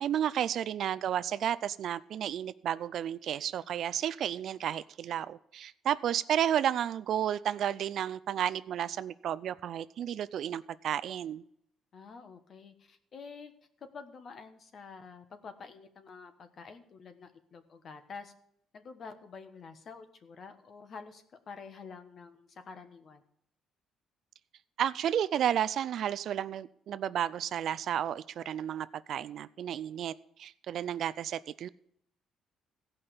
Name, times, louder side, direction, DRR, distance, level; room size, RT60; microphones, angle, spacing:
voice 1, 0.0-11.4 24.8-30.1 30.4-31.7, right 10 dB, 55° right, 16 dB, 0.4 m, -32 dB
voice 2, 11.9-13.5 13.8-18.3 18.7-23.2, left 5 dB, 40° left, 9 dB, 1.2 m, -48 dB
16.0 x 5.6 x 6.8 m, 0.72 s
cardioid pair, 135°, 0 cm